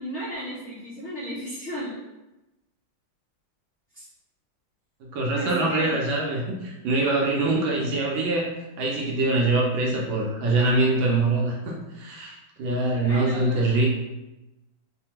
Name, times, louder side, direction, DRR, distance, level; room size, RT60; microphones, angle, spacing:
voice 1, 0.0-2.0 3.9-4.1 5.3-6.1 13.0-13.6, equal, 65° left, -10 dB, 0.7 m, -34 dB
voice 2, 5.0-8.5 8.8-13.9, right 2 dB, 75° right, -2 dB, 1.3 m, -24 dB
3.4 x 2.2 x 2.8 m, 1.0 s
omnidirectional pair, 2.3 m